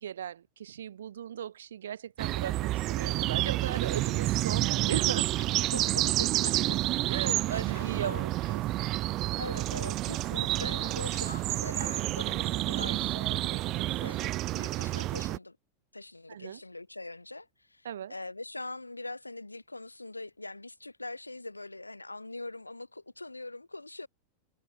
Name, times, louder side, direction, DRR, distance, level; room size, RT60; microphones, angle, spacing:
voice 1, 0.0-5.3 7.1-8.6 16.3-16.6 17.8-18.1, right 9 dB, 65° right, 3.2 m, -37 dB
sound 1, 2.2-15.4, right 17 dB, 35° right, 1.0 m, -29 dB
voice 2, 5.7-6.8 7.3-8.5 9.4-15.6 15.9-24.1, left 2 dB, 85° left, 1.1 m, -42 dB
figure-of-eight pair, 90°, 0 cm